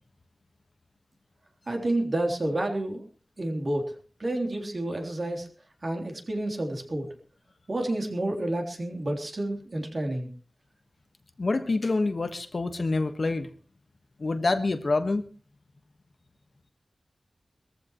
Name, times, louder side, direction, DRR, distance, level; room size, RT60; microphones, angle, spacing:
voice 1, 1.7-3.0 3.4-3.9 4.2-5.5 5.8-7.1 7.7-10.3, right 1 dB, 45° right, 2 dB, 3.5 m, -29 dB
voice 2, 11.4-13.5 14.2-15.2, left 3 dB, 55° left, 8 dB, 1.4 m, -26 dB
22.0 x 14.5 x 3.1 m, 0.38 s
wide cardioid pair, 80°, 0 cm